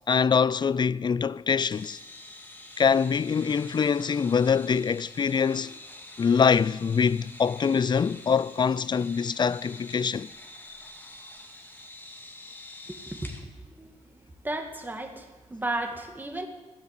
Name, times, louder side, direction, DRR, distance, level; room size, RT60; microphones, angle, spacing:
voice 1, 0.1-2.0 2.8-5.7 6.2-10.3, left 6 dB, 35° left, 0.4 m, -24 dB
sound 1, 1.7-13.4, left 1 dB, 15° left, 2.3 m, -46 dB
voice 2, 12.9-16.5, right 2 dB, 15° right, 2.2 m, -35 dB
16.5 x 9.9 x 7.8 m
cardioid pair, 95°, 13 cm